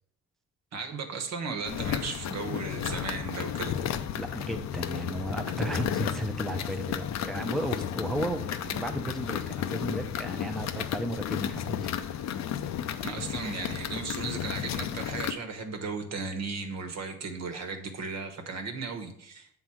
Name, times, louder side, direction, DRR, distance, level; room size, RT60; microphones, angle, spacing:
voice 1, 0.7-3.8 13.0-19.5, right 4 dB, 60° right, 6 dB, 1.3 m, -36 dB
sound 1, 1.7-15.3, left 10 dB, 60° left, 0.6 m, -33 dB
voice 2, 3.5-11.8, right 1 dB, ahead, 4 dB, 0.7 m, -34 dB
7.3 x 3.8 x 6.1 m, 0.68 s
cardioid pair, 90°, 30 cm